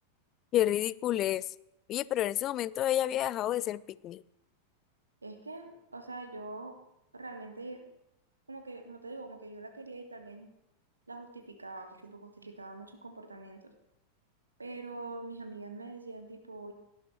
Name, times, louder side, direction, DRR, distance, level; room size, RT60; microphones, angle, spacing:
voice 1, 0.5-1.5 1.9-4.2, left 12 dB, 35° left, 21 dB, 0.4 m, -30 dB
voice 2, 5.2-6.8 7.1-7.9 8.5-10.5 11.1-13.7 14.6-16.7, right 2 dB, 80° right, 6 dB, 1.6 m, -44 dB
18.0 x 11.5 x 3.3 m, 0.85 s
figure-of-eight pair, 90°, 0 cm